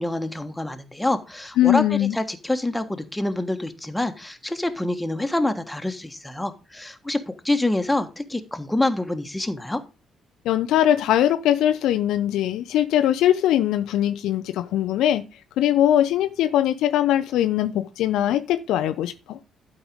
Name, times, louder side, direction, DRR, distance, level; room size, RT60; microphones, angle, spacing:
voice 1, 0.0-9.8, left 1 dB, 10° left, 1.4 m, -26 dB
voice 2, 1.6-2.2 10.5-15.2 15.6-19.4, left 11 dB, 65° left, 0.5 m, -21 dB
12.0 x 4.9 x 5.2 m
figure-of-eight pair, 45°, 0 cm